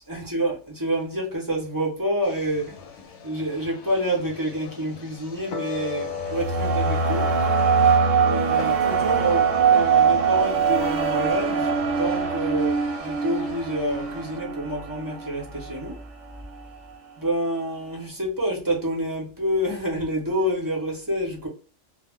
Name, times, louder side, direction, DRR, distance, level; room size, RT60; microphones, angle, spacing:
voice 1, 0.1-2.8 3.2-7.3 8.2-16.0 17.2-21.5, right 1 dB, 20° right, 0.7 m, -28 dB
sound 1, 2.2-14.4, left 5 dB, 75° left, 0.9 m, -45 dB
sound 2, 5.5-12.0, left 6 dB, 60° left, 0.5 m, -37 dB
sound 3, 5.7-16.0, right 6 dB, 85° right, 0.9 m, -22 dB
2.3 x 2.0 x 3.4 m
omnidirectional pair, 1.3 m